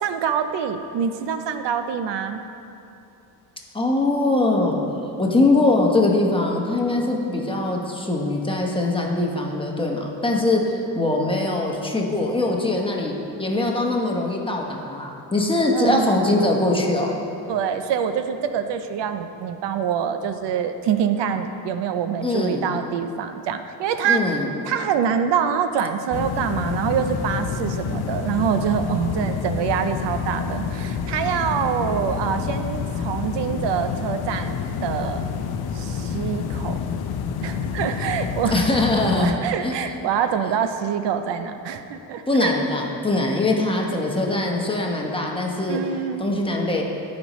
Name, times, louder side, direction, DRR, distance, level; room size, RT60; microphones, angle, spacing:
voice 1, 0.0-2.4 15.7-16.5 17.5-24.3 24.6-35.3 35.7-36.8 37.4-38.6 39.1-42.5 45.7-46.3, right 8 dB, 80° right, 9 dB, 0.6 m, -25 dB
voice 2, 3.7-4.8 5.2-13.1 13.4-17.1 22.2-22.7 24.0-24.5 38.5-39.3 39.6-39.7 42.3-45.8 46.2-46.8, left 2 dB, 10° left, 0 dB, 1.0 m, -22 dB
sound 1, 26.1-39.3, left 6 dB, 65° left, 0.6 m, -28 dB
14.0 x 5.3 x 3.1 m, 2.8 s
cardioid pair, 100°, 42 cm